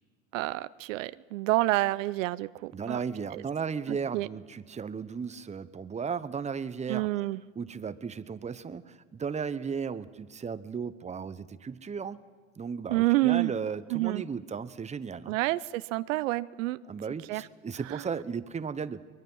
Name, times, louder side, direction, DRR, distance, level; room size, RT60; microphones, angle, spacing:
voice 1, 0.3-3.0 3.3-3.4 3.9-4.3 6.9-7.4 12.9-13.5 13.9-14.2 15.3-16.8 17.3-17.5 17.9-18.0, right 18 dB, 80° right, 16 dB, 0.6 m, -28 dB
voice 2, 2.7-7.1 7.6-12.2 12.6-15.4 16.9-19.0, right 6 dB, 20° right, 14 dB, 0.9 m, -35 dB
23.5 x 20.5 x 5.6 m, 1.4 s
hypercardioid pair, 90°, 38 cm